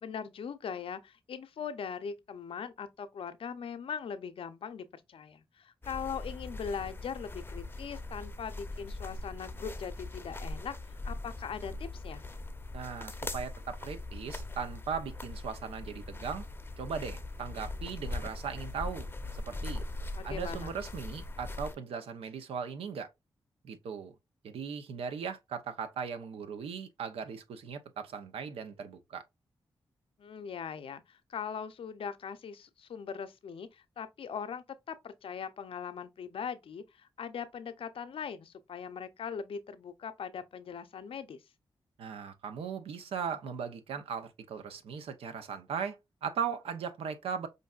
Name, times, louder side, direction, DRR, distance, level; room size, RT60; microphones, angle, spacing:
voice 1, 0.0-10.7 11.0-12.2 20.1-20.8 30.2-41.4, left 7 dB, 70° left, 0.5 m, -40 dB
sound 1, 5.8-21.7, left 2 dB, 20° left, 0.6 m, -41 dB
voice 2, 12.7-16.5 16.8-19.1 19.3-19.8 20.2-23.1 23.6-24.1 24.4-29.2 42.0-47.5, right 6 dB, 85° right, 0.6 m, -38 dB
5.1 x 2.6 x 2.3 m
supercardioid pair, 45°, 10 cm